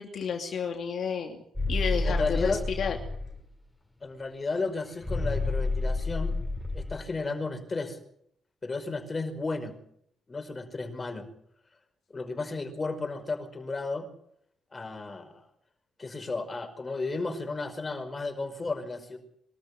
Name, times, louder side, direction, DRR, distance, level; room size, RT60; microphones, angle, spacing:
voice 1, 0.0-1.4 1.7-3.0, left 6 dB, 60° left, 4 dB, 2.7 m, -31 dB
sound 1, 1.6-3.4 5.0-7.0, left 2 dB, 10° left, 5.9 m, -29 dB
voice 2, 2.0-2.7 4.0-6.3 6.7-8.0 8.6-9.8 10.3-11.3 12.1-14.1 14.7-15.4 16.0-19.2, left 3 dB, 25° left, 7 dB, 5.3 m, -33 dB
23.5 x 13.5 x 10.0 m, 0.69 s
cardioid pair, 90°, 0 cm